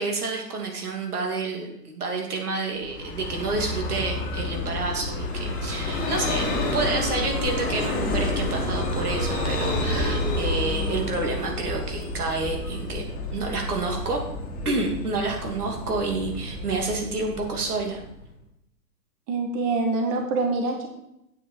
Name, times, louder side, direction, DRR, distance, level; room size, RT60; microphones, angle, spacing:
voice 1, 0.0-14.2 14.6-18.0, right 3 dB, 65° right, 1 dB, 2.8 m, -29 dB
Vehicle, 2.8-18.3, left 1 dB, 20° left, 1.7 m, -29 dB
voice 2, 19.3-20.9, right 3 dB, 10° right, 4 dB, 0.5 m, -25 dB
8.9 x 7.9 x 4.5 m, 0.84 s
figure-of-eight pair, 125°, 47 cm